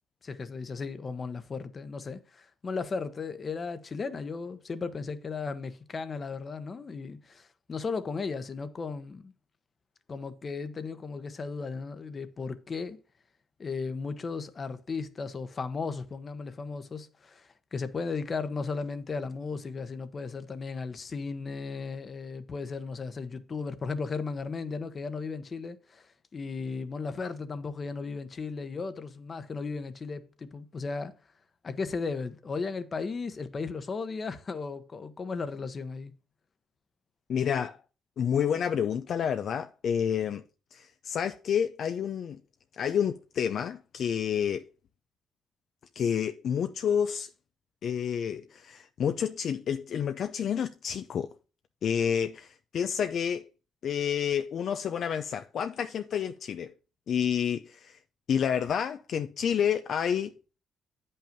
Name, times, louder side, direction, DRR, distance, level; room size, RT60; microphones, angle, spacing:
voice 1, 0.2-9.3 10.1-13.0 13.6-31.1 31.6-36.1, left 4 dB, 40° left, 1.0 m, -35 dB
voice 2, 37.3-37.8 38.2-40.4 40.7-42.4 42.7-44.6 46.0-47.3 47.8-51.3 51.8-53.5 53.8-56.7 57.1-58.0 58.3-60.3, left 8 dB, 65° left, 0.5 m, -29 dB
8.8 x 5.6 x 5.2 m
cardioid pair, 90°, 0 cm